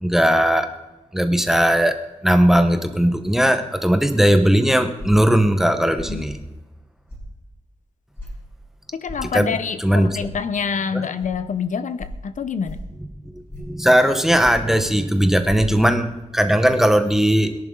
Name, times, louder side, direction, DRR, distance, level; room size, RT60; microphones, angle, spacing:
voice 1, 0.0-0.7 1.1-2.0 2.2-6.4 9.3-10.1 10.9-11.0 13.6-17.5, equal, 5° right, 7 dB, 1.0 m, -18 dB
sound 1, 5.0-5.3 6.0-6.2 7.1-7.3 8.2-8.3 9.1-9.3 10.2-10.3 11.2-11.3 12.0-12.2 12.6-12.9 13.5-13.8 14.4-14.7 15.5-15.6, equal, 15° left, 5.5 m, -35 dB
voice 2, 8.9-12.8, left 6 dB, 80° left, 12 dB, 0.7 m, -26 dB
22.0 x 11.0 x 3.8 m, 1.0 s
wide cardioid pair, 145°, 13 cm